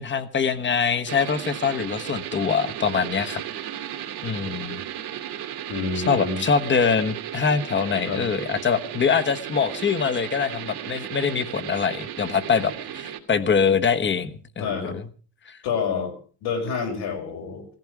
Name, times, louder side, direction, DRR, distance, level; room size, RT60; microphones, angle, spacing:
voice 1, 0.0-3.4 4.2-4.8 6.1-14.3 14.6-15.1 15.5-15.6, left 6 dB, 30° left, 10 dB, 1.2 m, -24 dB
sound 1, 1.1-13.2, right 10 dB, 75° right, 2.5 m, -35 dB
voice 2, 5.7-6.4 8.1-8.3 14.6-15.0 15.6-16.2 16.4-17.7, left 5 dB, 80° left, 2 dB, 5.4 m, -28 dB
17.0 x 15.0 x 4.7 m, 0.41 s
cardioid pair, 140°, 39 cm